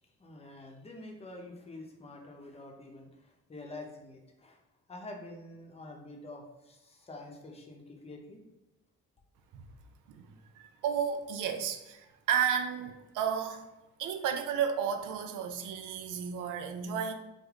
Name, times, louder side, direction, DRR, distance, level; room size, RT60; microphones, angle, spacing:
voice 1, 0.2-4.6 4.9-8.4, left 2 dB, 20° left, 1 dB, 0.7 m, -47 dB
voice 2, 10.1-13.7 14.0-17.1, right 8 dB, 80° right, 6 dB, 0.5 m, -33 dB
3.4 x 2.1 x 3.5 m, 0.99 s
cardioid pair, 90°, 30 cm